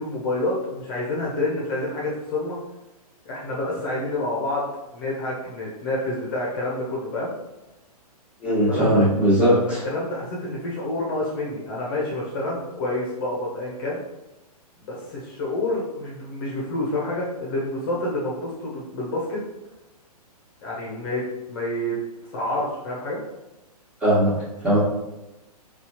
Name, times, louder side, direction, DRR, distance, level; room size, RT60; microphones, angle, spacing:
voice 1, 0.0-2.6 3.3-4.6 4.9-7.3 8.7-9.0 9.4-14.0 14.8-19.4 20.6-22.0 22.3-23.2, left 1 dB, 35° left, -4 dB, 0.8 m, -28 dB
voice 2, 8.4-9.8 24.0-24.3 24.6-24.8, equal, 5° right, -9 dB, 1.3 m, -19 dB
4.0 x 2.4 x 2.9 m, 1.0 s
figure-of-eight pair, 120°, 20 cm